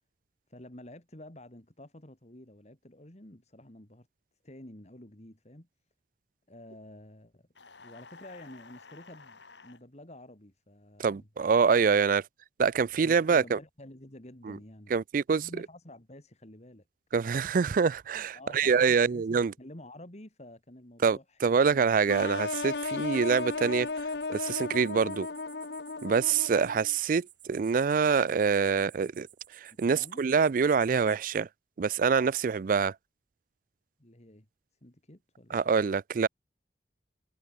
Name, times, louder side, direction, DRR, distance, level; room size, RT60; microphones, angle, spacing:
voice 1, 0.5-4.1 4.4-5.7 6.5-7.5 7.8-11.3 12.9-14.9 15.3-16.8 18.3-21.9 29.7-30.2 34.0-34.5 34.8-35.7, left 1 dB, 40° left, 2.9 m, -50 dB
sound 1, 7.5-9.8, left 4 dB, 85° left, 4.1 m, -52 dB
voice 2, 11.0-12.2 12.6-13.6 14.5-14.6 14.9-15.5 17.1-19.5 21.0-23.9 24.3-25.3 26.0-29.3 29.6-31.5 31.8-32.9 35.5-36.3, right 5 dB, 50° right, 0.4 m, -25 dB
sound 2, 22.1-26.9, left 3 dB, 65° left, 1.0 m, -35 dB
sound 3, 22.2-31.4, right 15 dB, 90° right, 3.5 m, -56 dB
head